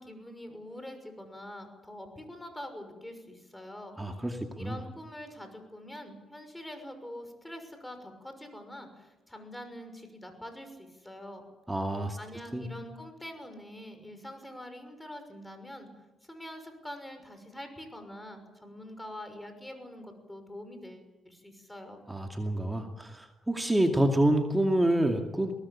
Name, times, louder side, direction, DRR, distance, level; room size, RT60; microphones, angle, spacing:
voice 1, 0.0-4.0 4.5-11.5 12.2-15.9 16.2-22.0, left 1 dB, 10° left, 7 dB, 6.1 m, -45 dB
voice 2, 4.0-4.3 4.6-4.8 11.7-12.2 12.5-12.6 22.1-25.5, right 1 dB, 10° right, 4 dB, 2.4 m, -27 dB
23.5 x 19.0 x 8.7 m, 1.1 s
cardioid pair, 90°, 0 cm